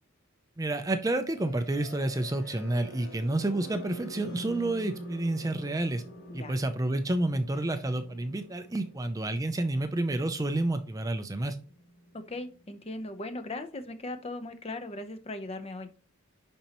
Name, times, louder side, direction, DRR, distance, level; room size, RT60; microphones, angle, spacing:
voice 1, 0.6-6.0 6.3-11.6, right 2 dB, 15° right, 8 dB, 0.5 m, -29 dB
sound 1, 1.3-13.2, equal, 85° left, 3.7 m, -47 dB
voice 2, 6.3-6.6 12.1-15.9, left 2 dB, 30° left, 7 dB, 0.7 m, -38 dB
10.5 x 4.3 x 3.0 m, 0.37 s
head